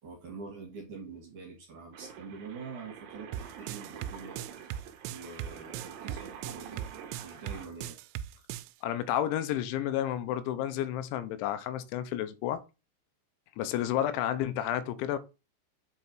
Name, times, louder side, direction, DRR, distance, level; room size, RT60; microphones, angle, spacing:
voice 1, 0.0-4.4 5.1-6.9 7.2-8.0, right 4 dB, 55° right, 2.6 m, -45 dB
sound 1, 1.9-7.7, right 8 dB, 70° right, 2.3 m, -47 dB
sound 2, 3.3-8.7, right 11 dB, 90° right, 3.0 m, -38 dB
voice 2, 8.8-12.6 13.6-15.2, left 11 dB, 85° left, 3.0 m, -31 dB
8.1 x 4.7 x 4.5 m
omnidirectional pair, 5.4 m